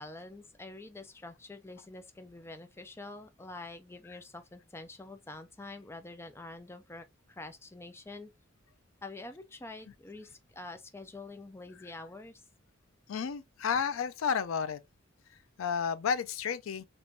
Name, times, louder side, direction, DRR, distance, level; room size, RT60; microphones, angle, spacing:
voice 1, 0.0-8.3 9.0-12.4, left 2 dB, 10° left, 0.4 m, -46 dB
voice 2, 13.1-14.8 15.3-16.9, left 6 dB, 80° left, 0.4 m, -32 dB
3.5 x 2.9 x 2.5 m
head